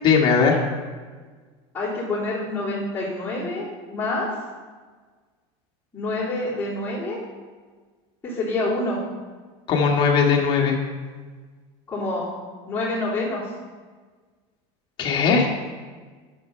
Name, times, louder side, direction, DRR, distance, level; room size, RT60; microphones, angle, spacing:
voice 1, 0.0-0.6 9.7-10.8 15.0-15.5, left 5 dB, 30° left, 0 dB, 1.6 m, -19 dB
voice 2, 1.7-4.3 5.9-7.2 8.2-9.0 11.9-12.3 12.7-13.4, left 2 dB, 10° left, -14 dB, 3.2 m, -27 dB
10.5 x 6.5 x 5.6 m, 1.5 s
supercardioid pair, 165°, 15 cm